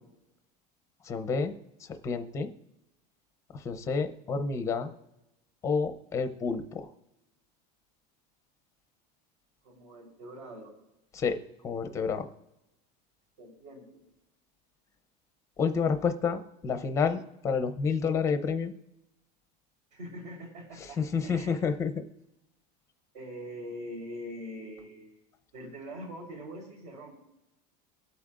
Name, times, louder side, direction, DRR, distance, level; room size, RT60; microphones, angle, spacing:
voice 1, 1.0-1.5 2.0-2.5 3.5-4.9 5.6-6.9 11.1-12.3 15.6-18.7 20.8-22.0, left 5 dB, 15° left, 8 dB, 0.6 m, -29 dB
voice 2, 9.6-10.7 13.4-14.0 19.9-21.6 23.1-25.2 25.5-27.1, equal, 60° right, -1 dB, 3.7 m, -43 dB
23.5 x 8.4 x 2.5 m, 0.93 s
supercardioid pair, 180°, 21 cm